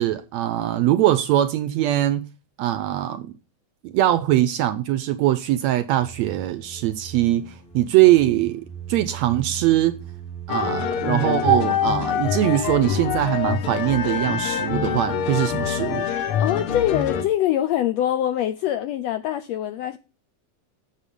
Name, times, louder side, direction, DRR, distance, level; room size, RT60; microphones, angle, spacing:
voice 1, 0.0-2.3 2.6-3.3 3.8-8.6 8.9-10.0 10.5-16.0, right 14 dB, 80° right, 1.6 m, -21 dB
sound 1, 6.0-12.0, right 9 dB, 20° left, 2.0 m, -39 dB
sound 2, 10.5-17.2, left 8 dB, 65° left, 1.4 m, -25 dB
voice 2, 16.1-20.0, left 11 dB, 80° left, 1.5 m, -24 dB
8.5 x 7.4 x 5.3 m
omnidirectional pair, 3.6 m